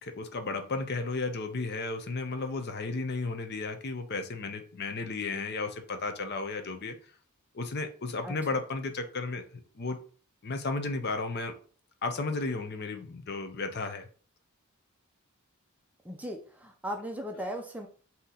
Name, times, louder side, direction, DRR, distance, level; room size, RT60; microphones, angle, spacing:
voice 1, 0.0-7.0 7.5-9.4 9.8-10.0 10.4-11.6 12.0-14.1, left 3 dB, 45° left, 7 dB, 0.6 m, -33 dB
voice 2, 16.0-17.9, equal, 5° right, 3 dB, 0.4 m, -37 dB
3.7 x 2.8 x 4.1 m, 0.41 s
head